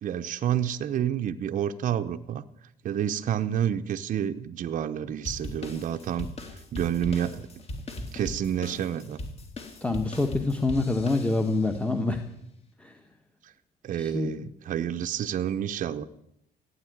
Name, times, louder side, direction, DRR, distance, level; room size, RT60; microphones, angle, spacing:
voice 1, 0.0-2.4 2.8-6.3 6.7-7.5 8.1-9.2 13.4-13.5 13.8-16.0, right 9 dB, 50° right, 7 dB, 0.8 m, -29 dB
sound 1, 5.2-11.7, left 1 dB, 35° left, 3.2 m, -39 dB
voice 2, 9.8-12.2 12.8-13.0 13.9-14.3, left 2 dB, 5° left, 5 dB, 1.3 m, -26 dB
15.5 x 9.6 x 9.4 m, 0.78 s
cardioid pair, 110°, 17 cm